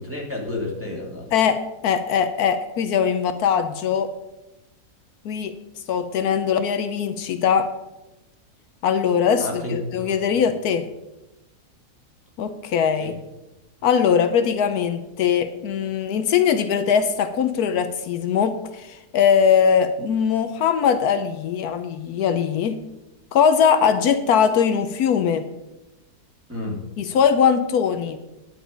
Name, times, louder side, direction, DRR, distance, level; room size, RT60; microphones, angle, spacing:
voice 1, 0.0-1.3 9.4-9.8 10.0-10.1 13.0-13.1 26.5-26.8, left 2 dB, 10° right, -4 dB, 2.1 m, -30 dB
voice 2, 1.3-4.1 5.2-5.5 5.9-7.7 8.8-10.8 12.4-13.1 13.8-22.8 23.3-25.4 27.0-28.2, left 7 dB, 75° left, 9 dB, 1.2 m, -21 dB
10.0 x 6.9 x 5.1 m, 0.97 s
omnidirectional pair, 1.7 m